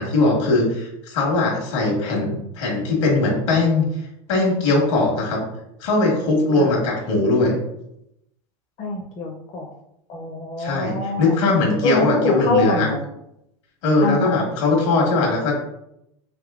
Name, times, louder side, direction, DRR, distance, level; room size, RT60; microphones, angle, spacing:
voice 1, 0.0-3.8 4.3-5.4 5.8-7.5 10.6-12.9 13.8-15.5, left 2 dB, 75° left, 0 dB, 1.4 m, -20 dB
voice 2, 8.8-9.7 10.1-11.3 11.8-13.0 14.0-14.4, left 2 dB, 45° left, -2 dB, 0.7 m, -24 dB
3.6 x 3.1 x 2.4 m, 0.81 s
hypercardioid pair, 105°, 15 cm